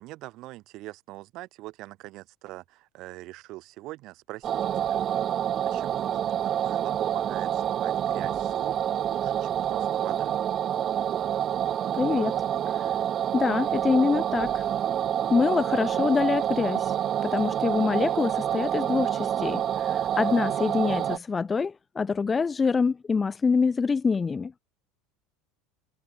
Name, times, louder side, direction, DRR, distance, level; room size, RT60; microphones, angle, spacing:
voice 1, 0.0-5.0 5.6-8.8 9.0-10.3, right 18 dB, 40° right, 4.0 m, -43 dB
sound 1, 4.4-21.2, right 10 dB, 25° right, 1.2 m, -27 dB
voice 2, 11.9-12.9 13.3-14.7 15.3-16.9 17.2-24.5, left 5 dB, 15° left, 0.4 m, -25 dB
cardioid pair, 170°, 0 cm